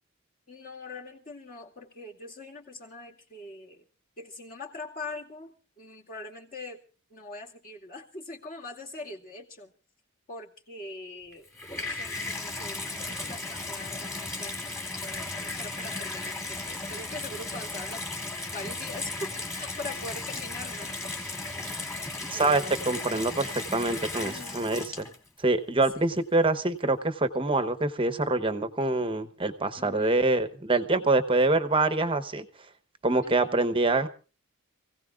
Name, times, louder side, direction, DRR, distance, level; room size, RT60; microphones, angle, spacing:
voice 1, 0.5-3.8 4.2-6.8 7.1-9.7 10.3-11.5 11.7-14.6 15.0-18.0 18.5-21.3 22.3-23.1 24.2-24.8 25.9-26.1 29.8-30.2 33.2-33.6, left 2 dB, 40° left, 0 dB, 2.3 m, -42 dB
Water tap faucet / Bathtub (filling or washing), 11.3-25.4 26.2-26.3, left 2 dB, 15° left, 2.4 m, -36 dB
voice 2, 22.3-25.1 25.4-32.5 33.0-34.1, right 2 dB, 25° right, 10 dB, 0.9 m, -25 dB
28.0 x 16.5 x 2.4 m, 0.35 s
head